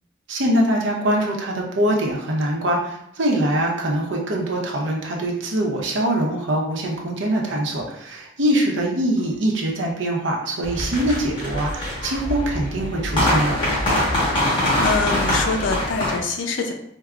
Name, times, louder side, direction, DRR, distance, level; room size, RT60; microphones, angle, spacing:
voice 1, 0.3-13.5, right 1 dB, 75° right, -1 dB, 0.7 m, -23 dB
sound 1, 10.6-16.2, left 1 dB, 25° left, 1.3 m, -23 dB
voice 2, 14.3-16.7, left 4 dB, 75° left, 3 dB, 0.5 m, -25 dB
4.6 x 2.0 x 2.4 m, 0.74 s
head